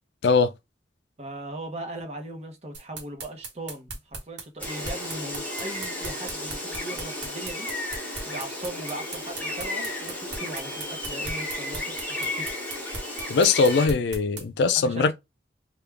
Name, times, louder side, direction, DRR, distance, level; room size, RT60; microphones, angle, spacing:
voice 1, 1.2-7.7 8.3-12.5 14.7-15.1, right 1 dB, 40° right, 0.9 m, -38 dB
sound 1, 2.7-14.4, right 3 dB, 90° right, 1.1 m, -37 dB
Gull seagull, 4.6-13.9, left 1 dB, 10° left, 1.2 m, -33 dB
voice 2, 13.3-15.1, left 4 dB, 70° left, 0.4 m, -21 dB
3.4 x 2.3 x 3.2 m
head